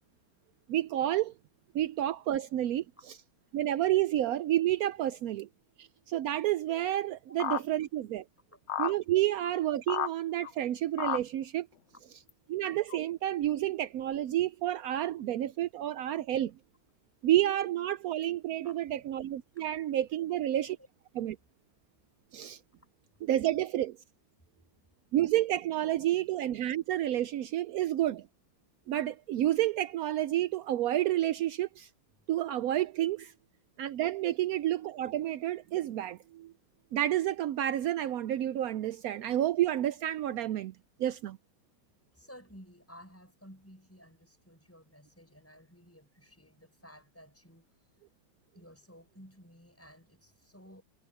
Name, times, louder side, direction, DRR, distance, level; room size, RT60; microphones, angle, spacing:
voice 1, 0.7-1.3 1.7-2.8 3.5-5.5 5.8-8.2 8.8-11.7 12.5-16.5 17.2-20.8 21.2-21.4 22.3-22.6 23.3-24.0 25.1-28.3 28.9-31.9 32.3-33.3 33.8-36.5 36.9-40.7 41.0-41.4, right 13 dB, 75° right, 0.8 m, -30 dB
sound 1, 7.4-7.6 8.7-8.9 9.4-9.5 9.9-10.1 10.4-10.5 11.0-11.2 12.3-12.4 12.9-13.0, left 10 dB, 75° left, 0.6 m, -31 dB
voice 2, 18.6-19.0 19.5-19.6 20.1-20.4 20.8-20.9 22.8-22.9 42.1-47.7 48.5-50.8, equal, 5° left, 7.1 m, -55 dB
omnidirectional pair, 2.1 m